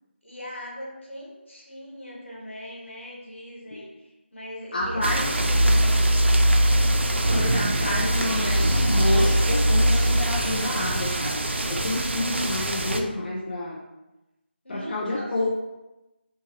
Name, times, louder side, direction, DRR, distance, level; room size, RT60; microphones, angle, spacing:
voice 1, 0.2-6.6 14.6-15.5, equal, 90° left, -4 dB, 1.2 m, -40 dB
voice 2, 4.7-5.3 7.2-13.8 14.7-15.5, left 1 dB, 50° left, -4 dB, 0.4 m, -29 dB
sound 1, 4.8-10.4, equal, 40° right, 0.9 m, -22 dB
sound 2, 5.0-13.0, right 2 dB, 70° right, 0.4 m, -27 dB
sound 3, 6.7-12.6, right 1 dB, 15° right, 0.6 m, -39 dB
2.8 x 2.4 x 2.8 m, 0.98 s
figure-of-eight pair, 160°, 6 cm